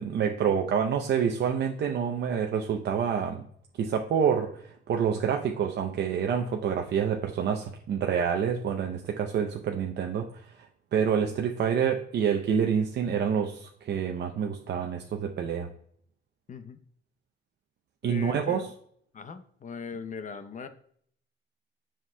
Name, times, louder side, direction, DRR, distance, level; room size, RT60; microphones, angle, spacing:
voice 1, 0.0-3.5 3.8-10.5 10.9-15.7 18.0-18.7, right 7 dB, 60° right, 3 dB, 0.6 m, -27 dB
voice 2, 16.5-16.8 18.0-18.7 19.1-20.7, left 5 dB, 40° left, 10 dB, 0.7 m, -40 dB
7.2 x 5.9 x 2.2 m, 0.62 s
cardioid pair, 90°, 20 cm